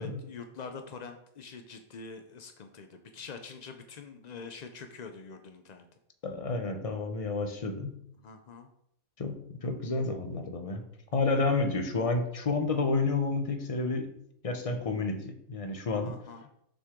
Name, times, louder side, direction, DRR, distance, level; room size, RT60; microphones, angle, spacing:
voice 1, 0.0-5.9 8.2-8.7 16.0-16.4, left 5 dB, 75° left, 6 dB, 0.3 m, -45 dB
voice 2, 6.2-8.0 9.2-10.8 11.1-14.1 14.4-16.1, left 3 dB, 35° left, 6 dB, 0.6 m, -30 dB
6.6 x 6.2 x 3.7 m, 0.74 s
omnidirectional pair, 1.5 m